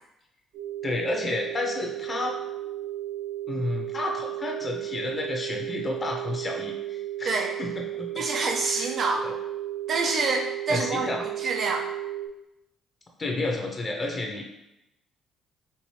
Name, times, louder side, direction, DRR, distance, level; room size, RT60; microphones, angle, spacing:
sound 1, 0.5-12.3, right 13 dB, 65° right, 1.2 m, -34 dB
voice 1, 0.8-2.4 3.5-8.2 8.7-8.9 9.2-9.3 10.7-11.3 13.2-14.5, left 2 dB, 35° left, 1 dB, 0.9 m, -31 dB
voice 2, 8.2-9.3 9.9-11.9, right 3 dB, 50° right, 1 dB, 0.7 m, -27 dB
4.6 x 2.9 x 3.0 m, 0.90 s
hypercardioid pair, 50°, 0 cm